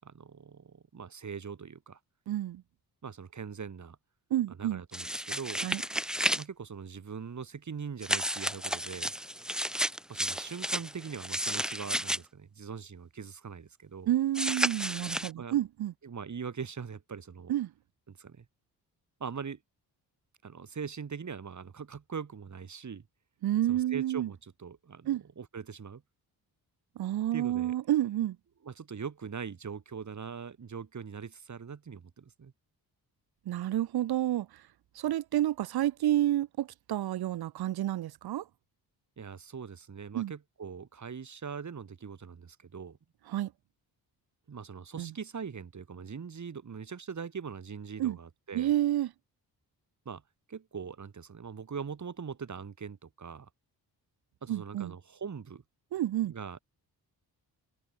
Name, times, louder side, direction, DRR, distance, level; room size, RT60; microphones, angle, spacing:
voice 1, 0.0-2.0 3.0-4.0 4.5-5.6 6.3-9.1 10.1-14.1 15.4-15.6 16.0-17.5 18.1-18.5 19.2-19.6 20.4-23.0 23.7-26.0 27.3-27.8 28.6-32.5 39.2-43.0 44.5-48.7 50.0-50.2 50.5-53.5 54.4-55.6 56.2-56.6, right 6 dB, 45° right, 6.0 m, -42 dB
voice 2, 2.3-2.6 4.3-4.8 5.6-5.8 14.1-15.9 17.5-17.7 23.4-24.3 25.1-25.2 27.0-28.4 33.5-34.5 34.9-38.4 40.1-40.3 43.3-43.5 45.0-45.1 48.0-48.2 48.5-49.1 54.5-54.9 55.9-56.3, right 13 dB, 70° right, 0.9 m, -29 dB
sound 1, 4.9-6.4 8.0-12.2 14.3-15.3, equal, ahead, 0.6 m, -32 dB
cardioid pair, 100°, 39 cm